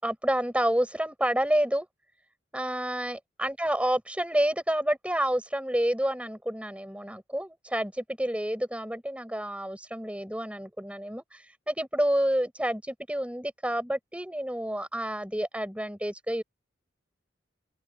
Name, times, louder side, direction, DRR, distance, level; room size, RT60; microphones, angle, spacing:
voice 1, 0.0-1.9 2.5-16.4, right 1 dB, 5° right, 6.3 m, -29 dB
open air
head